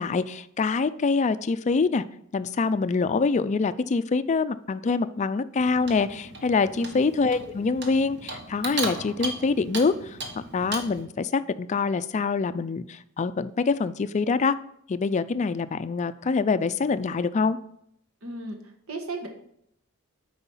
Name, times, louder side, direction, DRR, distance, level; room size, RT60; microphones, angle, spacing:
voice 1, 0.0-2.0 2.3-10.2 10.5-14.5 14.9-17.6, left 4 dB, 35° left, 14 dB, 0.3 m, -25 dB
Clock, 5.6-11.0, right 2 dB, 55° right, 1.4 m, -36 dB
voice 2, 18.2-18.6 18.9-19.3, right 2 dB, 80° right, 3 dB, 1.4 m, -35 dB
8.1 x 4.9 x 5.5 m, 0.73 s
head